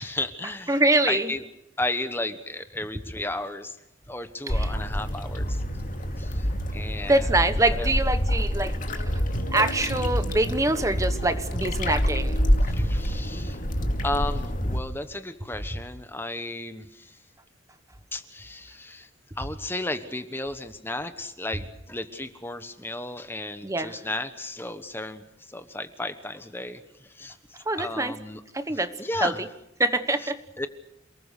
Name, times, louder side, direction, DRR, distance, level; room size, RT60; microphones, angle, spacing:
voice 1, 0.0-0.8 1.1-1.4 1.8-3.8 4.1-5.6 6.2-7.3 7.7-7.9 9.3-9.4 12.6-13.6 14.0-17.2 18.1-19.1 19.4-28.4 28.7-29.4 30.2-30.3 30.6-30.7, left 2 dB, 10° left, 10 dB, 1.1 m, -34 dB
voice 2, 0.7-1.3 4.5-4.7 7.1-9.0 9.5-12.4 12.8-12.9 13.3-13.4 13.8-13.9 23.6-24.0 27.6-28.1 28.5-28.9 29.2-29.5 29.8-30.4, right 2 dB, 15° right, 10 dB, 1.2 m, -25 dB
sound 1, 4.5-14.8, equal, 45° left, 2.3 m, -27 dB
sound 2, 8.9-14.4, equal, 70° left, 3.8 m, -37 dB
28.5 x 20.0 x 6.6 m, 0.84 s
head